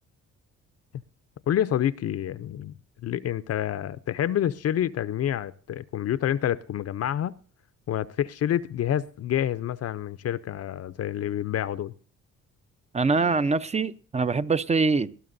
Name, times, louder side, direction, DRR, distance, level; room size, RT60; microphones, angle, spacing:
voice 1, 1.5-2.7 3.0-7.4 7.9-11.9, left 11 dB, 55° left, 0.6 m, -28 dB
voice 2, 12.9-15.1, right 4 dB, 20° right, 0.6 m, -24 dB
19.5 x 12.5 x 2.6 m
cardioid pair, 90°, 30 cm